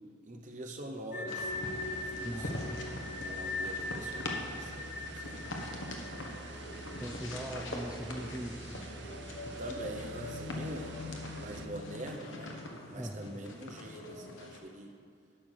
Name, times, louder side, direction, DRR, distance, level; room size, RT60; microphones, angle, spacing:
voice 1, 0.3-2.5 3.2-5.7 9.6-10.9 11.4-12.5 12.9-14.9, right 1 dB, 40° right, 3 dB, 1.0 m, -44 dB
sound 1, 1.1-8.0 8.2-8.4 8.9-14.3, left 3 dB, 45° left, 0.6 m, -42 dB
sound 2, 1.2-11.7, right 3 dB, 55° right, 0.7 m, -47 dB
sound 3, 1.3-14.6, left 1 dB, 70° left, 1.3 m, -43 dB
voice 2, 2.2-2.8 7.0-9.0 12.9-13.4, equal, 5° right, 0 dB, 0.4 m, -41 dB
11.5 x 5.9 x 6.5 m, 2.3 s
head